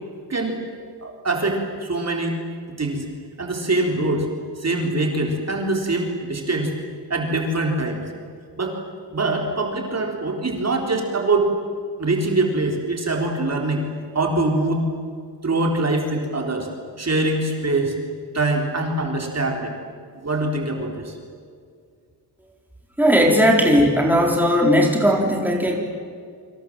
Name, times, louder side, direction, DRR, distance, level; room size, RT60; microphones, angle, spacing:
voice 1, 1.0-2.4 2.8-3.1 3.4-4.3 4.6-6.7 7.1-8.0 8.6-8.8 9.1-11.5 12.0-13.8 14.1-14.8 15.4-16.7 17.0-18.0 18.3-19.7 20.1-21.2, right 2 dB, 35° right, 1 dB, 4.0 m, -23 dB
voice 2, 23.0-25.8, equal, 5° right, 0 dB, 4.0 m, -17 dB
29.0 x 26.0 x 7.7 m, 2.1 s
wide cardioid pair, 165°, 43 cm